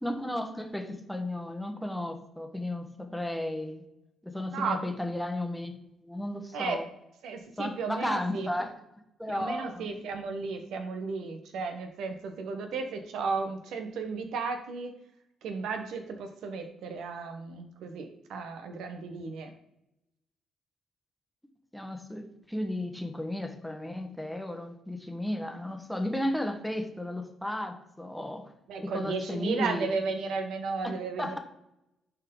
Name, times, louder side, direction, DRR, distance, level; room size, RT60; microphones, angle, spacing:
voice 1, 0.0-3.8 4.2-6.9 7.6-8.7 9.2-10.1 21.7-28.5 28.8-29.9 30.8-30.9 31.2-31.4, left 1 dB, 5° left, 4 dB, 1.1 m, -34 dB
voice 2, 7.2-8.5 9.3-14.9 15.4-19.5 28.7-31.4, right 4 dB, 80° right, 6 dB, 1.1 m, -34 dB
10.5 x 4.6 x 3.8 m, 0.83 s
cardioid pair, 90°, 0 cm